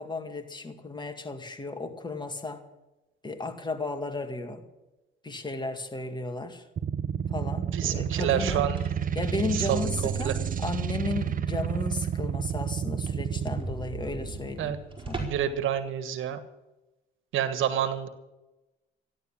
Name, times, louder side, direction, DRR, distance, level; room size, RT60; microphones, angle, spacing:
voice 1, 0.0-2.6 3.2-4.6 5.2-6.6 7.3-8.6 9.2-14.7 15.1-15.3, left 3 dB, 20° left, 6 dB, 2.2 m, -34 dB
sound 1, 6.8-13.6, right 8 dB, 45° right, 0.7 m, -30 dB
voice 2, 7.7-8.8 9.5-10.3 14.6-14.8 15.2-16.4 17.3-18.1, right 10 dB, 80° right, 11 dB, 1.5 m, -28 dB
sound 2, 8.3-10.9 11.3-11.4 11.8-11.9 12.2-12.3 12.5-12.6 13.0-15.6, right 3 dB, 25° right, 4.8 m, -39 dB
14.0 x 11.0 x 7.4 m, 1.0 s
cardioid pair, 90°, 20 cm